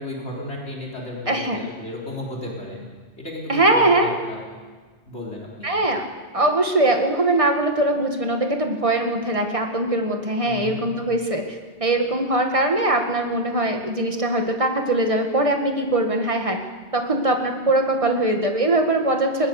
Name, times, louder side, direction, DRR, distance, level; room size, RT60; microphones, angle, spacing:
voice 1, 0.0-2.8 3.2-4.4 5.1-5.7 10.4-10.8, left 1 dB, 55° left, -2 dB, 4.2 m, -34 dB
voice 2, 1.3-1.6 3.5-4.1 5.6-6.0 6.3-16.6 16.9-19.5, right 2 dB, 25° right, 3 dB, 2.0 m, -21 dB
20.5 x 19.0 x 6.7 m, 1.4 s
omnidirectional pair, 1.4 m